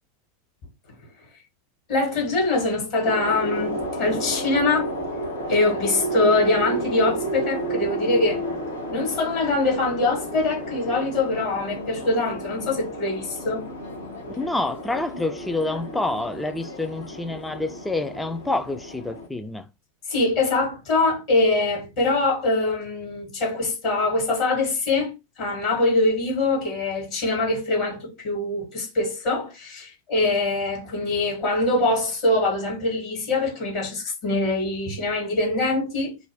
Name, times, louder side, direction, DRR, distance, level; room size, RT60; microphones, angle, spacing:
voice 1, 1.9-4.9 5.5-8.4 8.9-13.7 20.1-36.2, left 2 dB, 45° left, 1.4 m, -23 dB
sound 1, 3.0-19.3, right 1 dB, 70° left, 0.9 m, -32 dB
voice 2, 14.3-19.7, left 2 dB, 5° left, 0.3 m, -28 dB
2.6 x 2.1 x 3.3 m
figure-of-eight pair, 90°, 0 cm